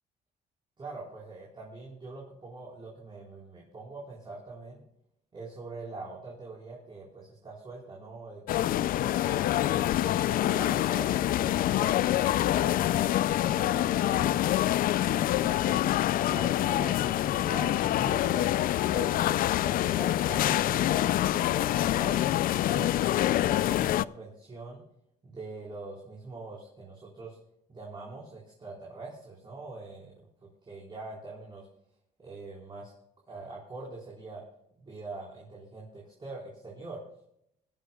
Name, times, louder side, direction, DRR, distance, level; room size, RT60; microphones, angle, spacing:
voice 1, 0.8-4.8 5.3-9.2 9.7-14.5 15.0-15.8 16.3-22.2 22.6-24.8 25.2-27.4 27.7-30.1 30.6-31.7 32.2-32.9 33.3-34.4 34.8-37.0, right 3 dB, 30° right, -4 dB, 4.4 m, -43 dB
sound 1, 8.5-24.0, left 13 dB, 60° left, 0.4 m, -26 dB
25.0 x 11.5 x 2.3 m, 0.74 s
cardioid pair, 110°, 17 cm